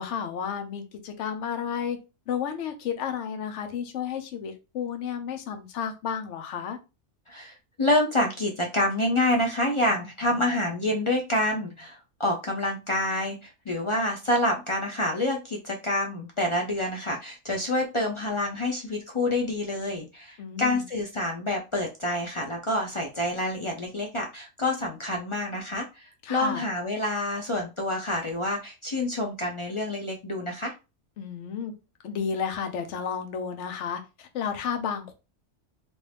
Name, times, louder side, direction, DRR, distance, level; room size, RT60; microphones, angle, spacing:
voice 1, 0.0-2.0 2.3-6.8 20.4-20.8 26.2-26.6 31.2-31.7 32.0-35.1, left 7 dB, 75° left, 6 dB, 1.0 m, -32 dB
voice 2, 7.3-30.7, left 1 dB, 45° left, 0 dB, 0.4 m, -27 dB
2.9 x 2.6 x 3.3 m, 0.28 s
omnidirectional pair, 1.2 m